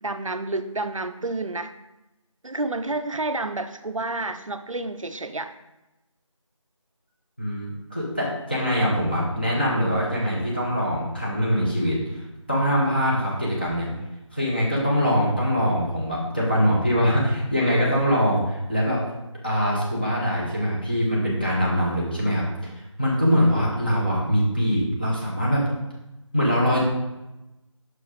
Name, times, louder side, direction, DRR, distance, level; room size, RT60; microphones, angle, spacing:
voice 1, 0.0-1.7 2.4-5.5, right 2 dB, 80° right, 9 dB, 0.5 m, -29 dB
voice 2, 7.4-12.2 12.5-13.9 14.3-19.0 19.4-22.5 22.8-25.6 26.3-26.8, equal, 20° left, -6 dB, 0.9 m, -23 dB
6.1 x 4.4 x 4.0 m, 0.97 s
figure-of-eight pair, 170°, 17 cm